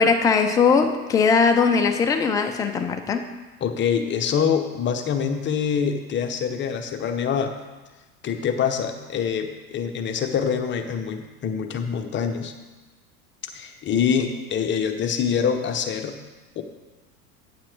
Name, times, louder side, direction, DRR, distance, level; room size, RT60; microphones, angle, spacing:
voice 1, 0.0-3.3, left 5 dB, 10° left, 5 dB, 0.3 m, -20 dB
voice 2, 3.6-7.6 8.2-12.5 13.5-16.2 16.6-16.7, left 7 dB, 25° left, 6 dB, 0.8 m, -25 dB
8.8 x 7.5 x 4.6 m, 1.2 s
figure-of-eight pair, 90°, 46 cm